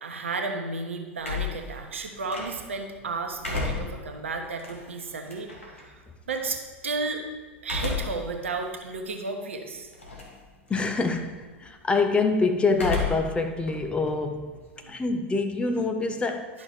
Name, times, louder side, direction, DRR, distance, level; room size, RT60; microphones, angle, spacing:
voice 1, 0.0-6.0 6.3-7.2 7.6-9.9 16.5-16.6, right 3 dB, 70° right, 4 dB, 1.0 m, -33 dB
sound 1, 1.2-2.8 3.2-5.8 7.6-8.3 8.8-8.9 9.9-10.4 10.7-11.2 12.7-13.4 13.7-15.1, left 4 dB, 80° left, 1.7 m, -32 dB
voice 2, 10.7-14.6 14.9-16.6, left 3 dB, 15° left, 6 dB, 0.8 m, -26 dB
11.0 x 5.9 x 4.4 m, 1.3 s
figure-of-eight pair, 85°, 7 cm